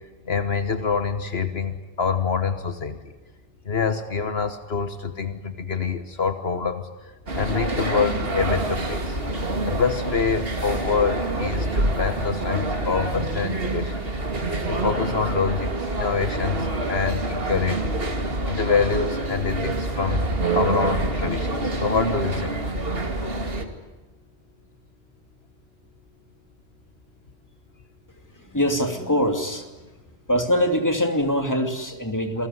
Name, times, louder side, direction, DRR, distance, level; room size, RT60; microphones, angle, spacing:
voice 1, 0.3-3.1 3.6-9.2 9.6-14.0 14.7-17.9 18.5-20.2 20.5-22.7, left 5 dB, 65° left, 9 dB, 1.6 m, -26 dB
sound 1, 7.3-23.6, right 2 dB, 60° right, 2.8 m, -26 dB
voice 2, 28.3-29.7 30.3-32.5, equal, 15° left, 5 dB, 2.7 m, -23 dB
28.0 x 20.0 x 9.7 m, 1.2 s
omnidirectional pair, 1.1 m